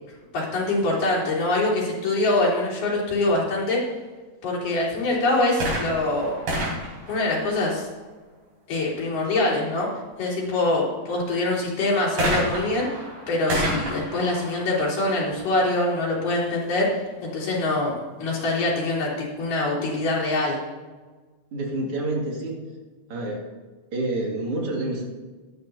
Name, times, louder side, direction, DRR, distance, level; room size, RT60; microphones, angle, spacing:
voice 1, 0.3-3.8 4.4-6.4 7.1-7.9 8.7-9.9 10.2-16.9 17.2-20.6, left 2 dB, 75° left, -6 dB, 5.1 m, -24 dB
sound 1, 5.5-8.1 12.2-15.8 16.6-16.7, right 1 dB, 90° right, 5.9 m, -30 dB
voice 2, 21.5-22.6 23.1-23.5 23.9-25.0, right 2 dB, 45° right, -2 dB, 3.0 m, -28 dB
14.5 x 12.0 x 2.8 m, 1.3 s
omnidirectional pair, 3.8 m